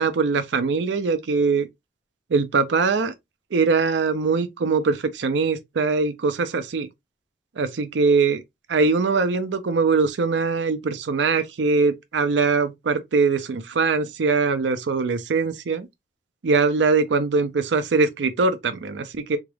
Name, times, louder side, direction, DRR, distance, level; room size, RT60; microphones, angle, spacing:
voice 1, 0.0-1.7 2.3-3.1 3.5-6.9 7.6-8.4 8.7-15.9 16.4-19.4, right 4 dB, 90° right, 0.5 m, -22 dB
3.5 x 2.4 x 3.3 m
head